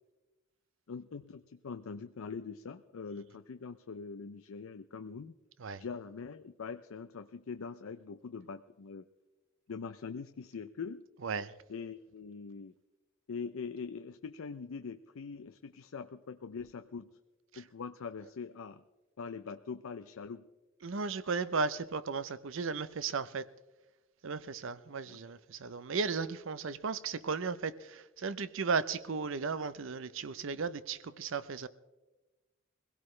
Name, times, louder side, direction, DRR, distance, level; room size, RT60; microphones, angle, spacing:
voice 1, 0.9-5.3 5.8-9.1 9.7-11.0 11.7-12.7 13.3-17.2 17.6-18.8 19.2-20.4 25.1-25.2, left 5 dB, 85° left, 0.5 m, -43 dB
voice 2, 20.8-23.4 24.2-31.7, right 4 dB, 65° right, 0.6 m, -35 dB
22.5 x 17.0 x 3.2 m
head